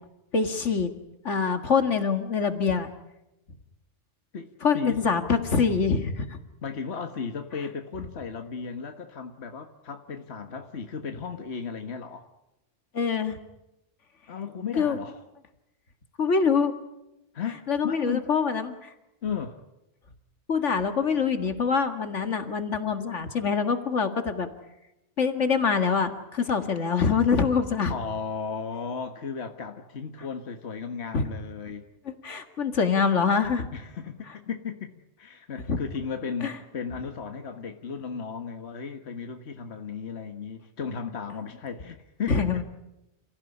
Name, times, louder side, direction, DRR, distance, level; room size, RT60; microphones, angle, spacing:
voice 1, 0.3-0.9 1.2-2.9 4.6-6.4 12.9-13.4 14.8-15.0 16.2-16.7 17.7-18.9 20.5-24.5 25.2-27.9 31.1-31.2 32.1-33.7 35.7-35.8 36.4-36.5 42.3-42.6, left 5 dB, 80° left, 8 dB, 2.2 m, -25 dB
voice 2, 4.3-5.0 6.6-12.3 14.3-15.2 17.3-18.3 19.2-19.6 27.9-31.9 33.7-42.6, left 6 dB, 65° left, 6 dB, 1.8 m, -35 dB
29.0 x 16.0 x 10.0 m, 0.91 s
omnidirectional pair, 1.2 m